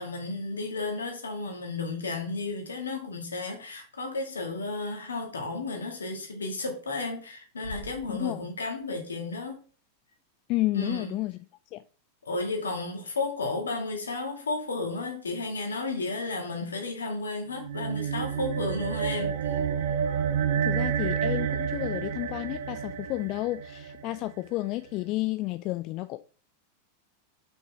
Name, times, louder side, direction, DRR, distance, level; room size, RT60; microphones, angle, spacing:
voice 1, 0.0-9.6 10.7-11.2 12.2-19.6, left 3 dB, 70° left, 2.0 m, -33 dB
Bass drum, 7.6-9.3, right 1 dB, 70° right, 1.7 m, -45 dB
voice 2, 8.1-8.5 10.5-11.4 11.7-11.8 20.6-26.2, left 19 dB, 40° left, 0.4 m, -31 dB
sound 1, 17.5-24.2, right 8 dB, 55° right, 0.7 m, -29 dB
5.9 x 5.4 x 4.8 m
figure-of-eight pair, 90°, 0 cm